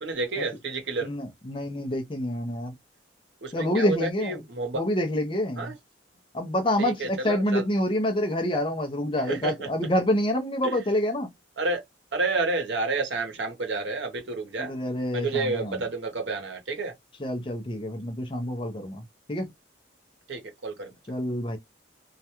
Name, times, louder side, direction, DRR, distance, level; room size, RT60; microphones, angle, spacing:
voice 1, 0.0-1.1 3.4-4.8 5.6-5.8 6.8-7.6 9.3-9.7 10.6-10.8 11.6-11.8 12.1-14.8 15.1-16.9 20.3-20.9, right 3 dB, 75° right, 0.8 m, -30 dB
voice 2, 1.0-2.8 3.5-4.4 4.7-5.7 6.3-11.3 14.6-15.8 17.2-19.5 21.1-21.6, left 1 dB, 25° left, 0.5 m, -27 dB
2.3 x 2.2 x 2.8 m
head